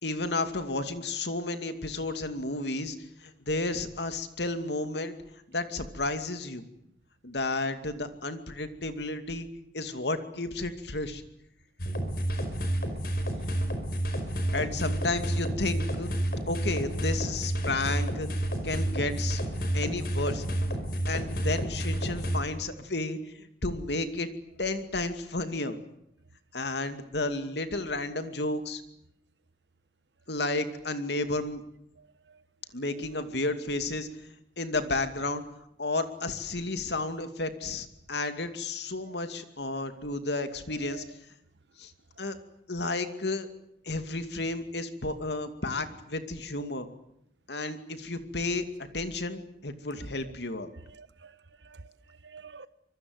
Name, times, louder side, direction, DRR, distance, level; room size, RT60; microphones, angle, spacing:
voice 1, 0.0-3.0 3.2-5.2 5.5-6.6 7.2-9.5 9.7-11.2 14.5-16.1 16.5-19.4 19.7-20.4 21.1-24.3 24.6-25.8 26.5-28.8 30.3-31.6 32.7-35.4 35.8-41.0 41.8-41.9 42.2-42.4 42.7-43.5 43.9-46.9 47.5-50.7, left 2 dB, 75° left, 2.5 m, -32 dB
sound 1, 11.8-22.4, right 1 dB, 55° left, 5.3 m, -30 dB
voice 2, 32.0-32.4 37.6-37.8 39.1-39.2 40.7-41.1 50.8-51.4 51.6-52.7, right 5 dB, 80° right, 1.2 m, -49 dB
25.5 x 22.5 x 8.0 m
head